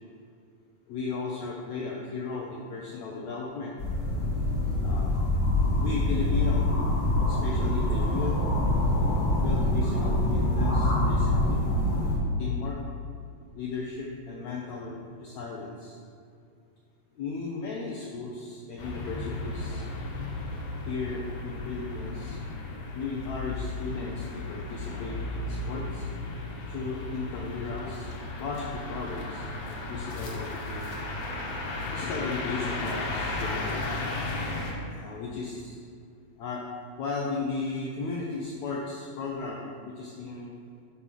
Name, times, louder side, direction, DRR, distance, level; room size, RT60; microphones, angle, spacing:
voice 1, 0.9-3.8 4.8-5.1 5.8-6.7 7.3-8.4 9.4-11.7 12.4-12.8 13.5-16.0 17.2-19.9 20.9-22.4 22.9-26.1 26.7-31.1 31.9-33.8 34.9-35.8 36.4-36.6 37.0-40.5, left 4 dB, 90° left, -2 dB, 1.5 m, -35 dB
sound 1, 3.8-12.2, left 1 dB, 45° left, 1.6 m, -25 dB
sound 2, 18.8-34.7, left 2 dB, 65° left, 2.2 m, -35 dB
5.9 x 5.5 x 6.3 m, 2.4 s
omnidirectional pair, 4.2 m